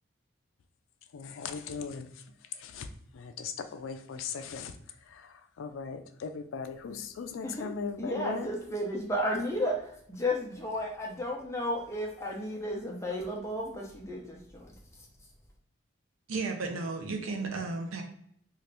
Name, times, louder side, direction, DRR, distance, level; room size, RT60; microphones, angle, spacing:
voice 1, 1.1-2.9 3.1-8.5, left 6 dB, 75° left, 9 dB, 0.4 m, -39 dB
voice 2, 8.0-14.8, left 1 dB, 15° left, -1 dB, 0.6 m, -33 dB
voice 3, 16.3-18.0, right 3 dB, 90° right, 3 dB, 0.6 m, -33 dB
2.7 x 2.5 x 3.2 m, 0.67 s
head